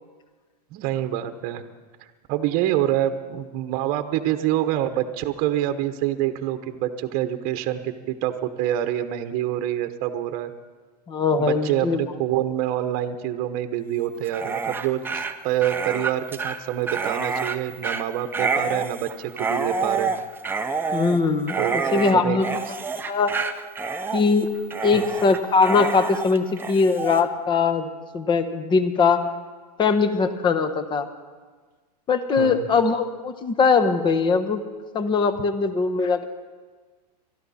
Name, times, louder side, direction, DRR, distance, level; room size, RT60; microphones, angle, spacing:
voice 1, 0.7-1.6 2.3-10.5 11.4-20.1 21.5-22.4 24.9-25.1 32.4-32.7, right 12 dB, 45° right, 8 dB, 1.1 m, -26 dB
voice 2, 11.1-12.0 20.9-22.6 23.1-23.3 24.1-24.5 24.8-27.9 28.1-29.2 29.8-31.1 32.1-34.6 34.9-36.2, left 4 dB, 20° left, 10 dB, 1.1 m, -21 dB
Dog, 14.2-27.2, right 4 dB, 10° right, 0.7 m, -28 dB
23.0 x 12.5 x 4.2 m, 1.4 s
hypercardioid pair, 125°, 21 cm